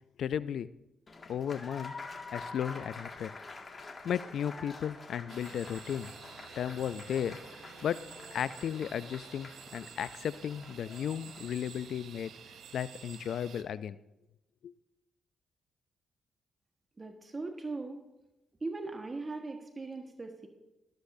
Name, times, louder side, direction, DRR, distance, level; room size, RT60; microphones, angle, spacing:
voice 1, 0.2-0.7 1.3-3.3 4.0-6.1 6.6-8.1 8.3-12.3 12.7-14.0 14.6-14.7, left 9 dB, 70° left, 18 dB, 0.4 m, -35 dB
Applause, 1.1-11.5, left 3 dB, 40° left, 1.9 m, -47 dB
sound 1, 5.3-13.6, right 8 dB, 75° right, 0.7 m, -50 dB
voice 2, 17.0-18.0 18.6-20.5, right 3 dB, 35° right, 4 dB, 1.4 m, -39 dB
13.0 x 12.5 x 2.7 m, 0.93 s
hypercardioid pair, 45°, 0 cm